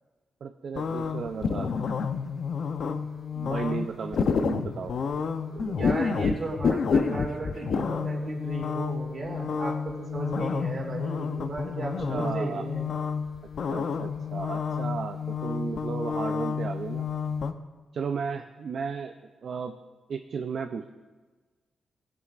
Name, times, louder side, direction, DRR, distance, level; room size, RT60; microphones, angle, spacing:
voice 1, 0.4-1.7 3.3-5.1 5.5-5.8 12.1-12.7 13.7-17.1 17.9-19.8 20.1-20.9, right 5 dB, 55° right, 6 dB, 0.5 m, -34 dB
sound 1, 0.7-17.5, left 5 dB, 55° left, 0.6 m, -30 dB
voice 2, 5.7-12.9, right 2 dB, 40° right, -1 dB, 2.6 m, -34 dB
19.5 x 10.5 x 2.5 m, 1.3 s
wide cardioid pair, 155°, 0 cm